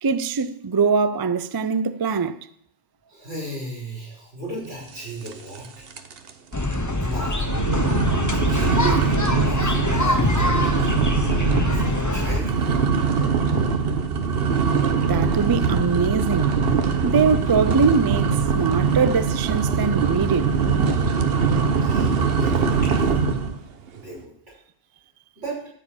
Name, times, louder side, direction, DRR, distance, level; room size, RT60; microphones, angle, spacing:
voice 1, 0.0-2.4 15.0-16.6 17.0-20.5, right 5 dB, 40° right, 0.3 m, -22 dB
voice 2, 3.1-5.9 7.0-7.6 8.3-11.0 11.7-12.8 21.8-23.0 23.9-24.6 25.4-25.6, right 2 dB, 80° right, 6.2 m, -35 dB
sound 1, 5.3-5.7 5.9-6.3 6.7-6.8 7.4-23.6, right 5 dB, 60° right, 1.1 m, -22 dB
sound 2, 6.5-12.4, left 1 dB, 15° left, 1.1 m, -23 dB
14.0 x 5.0 x 8.7 m
omnidirectional pair, 1.2 m